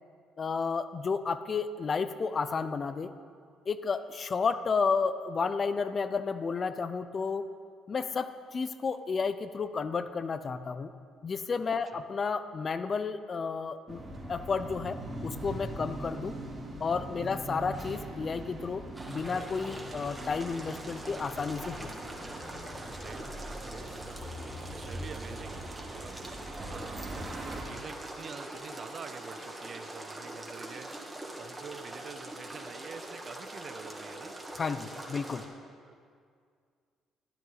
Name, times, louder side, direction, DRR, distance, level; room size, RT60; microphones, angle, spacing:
voice 1, 0.4-3.1 3.7-7.5 7.9-10.9 11.2-14.0 14.3-16.3 16.8-21.9 34.5-35.4, left 5 dB, 45° left, 12 dB, 0.5 m, -32 dB
sound 1, 13.9-27.6, right 1 dB, 30° right, 2.6 m, -41 dB
voice 2, 17.1-17.5 22.9-24.4 24.7-26.4 26.7-34.4 35.9-36.0, right 6 dB, 50° right, 10 dB, 0.6 m, -47 dB
sound 2, 18.9-35.4, right 1 dB, 15° right, 1.9 m, -43 dB
12.5 x 10.5 x 4.0 m, 2.1 s
hypercardioid pair, 50°, 0 cm